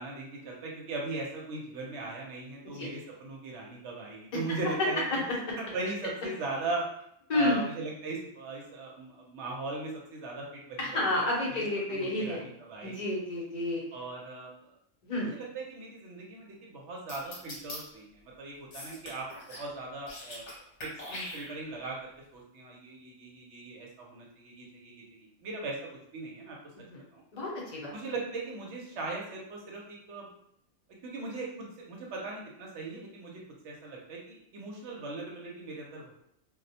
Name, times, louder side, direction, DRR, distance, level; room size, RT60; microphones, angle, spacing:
voice 1, 0.0-5.0 5.6-6.8 7.3-11.3 11.9-13.2 13.9-14.8 15.2-25.8 26.1-26.6 27.1-27.2 27.9-30.3 31.0-36.2, right 3 dB, 70° right, -1 dB, 0.9 m, -39 dB
voice 2, 7.3-7.6 10.8-12.4 12.8-13.8 15.0-15.3 26.9-27.0 27.3-27.9, left 1 dB, 40° left, -4 dB, 0.7 m, -30 dB
sound 1, 17.1-17.8 18.7-19.7 20.0-20.5 20.8-21.8, left 1 dB, 70° left, 1.1 m, -41 dB
2.3 x 2.0 x 2.7 m, 0.74 s
omnidirectional pair, 1.3 m